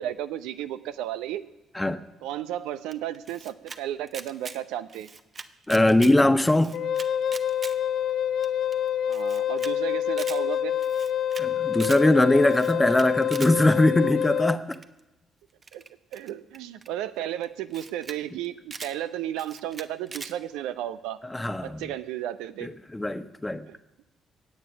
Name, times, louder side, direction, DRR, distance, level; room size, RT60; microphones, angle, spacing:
voice 1, 0.0-1.4 2.2-5.1 9.1-10.8 15.7-15.8 16.1-21.2 21.6-22.7 23.7-23.8, right 12 dB, 70° right, 12 dB, 0.7 m, -33 dB
Camera, 2.9-3.8 4.1-4.6 4.9-6.1 6.5-7.7 8.1-8.2 8.4-8.5 8.7-8.8 9.1-9.7 10.0-10.4 10.8-11.4 11.7-12.0 12.5-13.5 14.7-15.0 15.6-16.9 17.4-17.5 17.7-18.2 18.4-18.9 19.4-20.3, right 4 dB, 40° right, 1.0 m, -41 dB
voice 2, 5.7-6.8 11.4-14.6 21.3-21.8 22.6-23.6, left 1 dB, 15° left, 10 dB, 1.2 m, -21 dB
Wind instrument woodwind instrument, 6.7-14.6, left 10 dB, 55° left, 0.5 m, -27 dB
23.5 x 9.0 x 6.0 m, 1.0 s
figure-of-eight pair, 40°, 0 cm